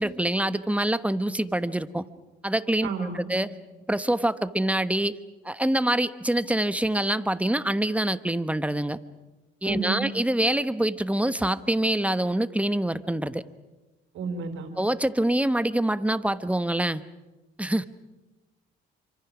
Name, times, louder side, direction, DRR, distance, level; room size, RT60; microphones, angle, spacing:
voice 1, 0.0-2.0 2.4-3.5 3.9-5.2 5.4-9.0 9.6-13.4 14.8-17.0 17.6-17.9, right 1 dB, 5° right, 12 dB, 1.1 m, -25 dB
voice 2, 2.8-3.3 9.6-10.0 14.1-14.7, right 4 dB, 85° right, 5 dB, 4.5 m, -31 dB
27.5 x 25.5 x 6.1 m, 1.1 s
cardioid pair, 90°, 20 cm